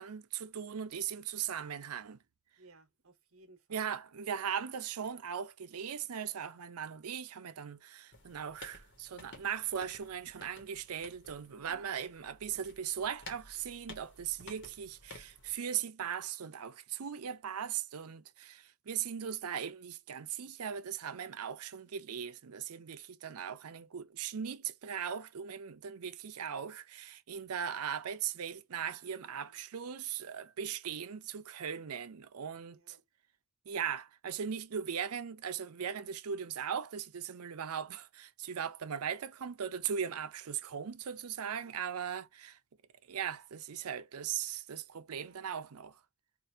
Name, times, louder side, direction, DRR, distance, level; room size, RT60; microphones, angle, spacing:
voice 1, 0.0-2.2 3.7-33.0 33.7-42.6 43.1-46.0, right 8 dB, 80° right, 0.5 m, -39 dB
voice 2, 2.6-3.9 11.5-11.8 29.1-29.6 32.7-33.0 41.5-42.2 45.1-45.5, right 2 dB, 65° right, 1.0 m, -61 dB
sound 1, 8.1-15.6, left 2 dB, 55° left, 1.3 m, -54 dB
4.5 x 2.5 x 2.6 m
head